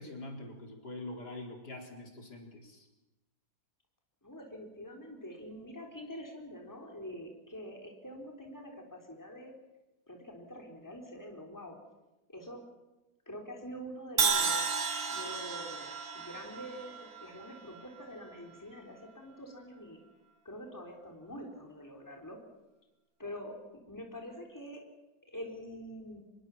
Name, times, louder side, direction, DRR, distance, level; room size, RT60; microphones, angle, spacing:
voice 1, 0.0-2.9, left 2 dB, 55° left, 2 dB, 4.8 m, -44 dB
voice 2, 4.2-9.5 10.1-11.8 12.3-12.6 13.3-20.0 20.4-22.4 23.2-23.6 23.9-24.8 25.3-26.2, equal, 10° left, 1 dB, 3.8 m, -46 dB
Crash cymbal, 14.2-18.2, right 5 dB, 80° right, 3.1 m, -33 dB
25.5 x 21.0 x 7.2 m, 1.0 s
omnidirectional pair, 2.1 m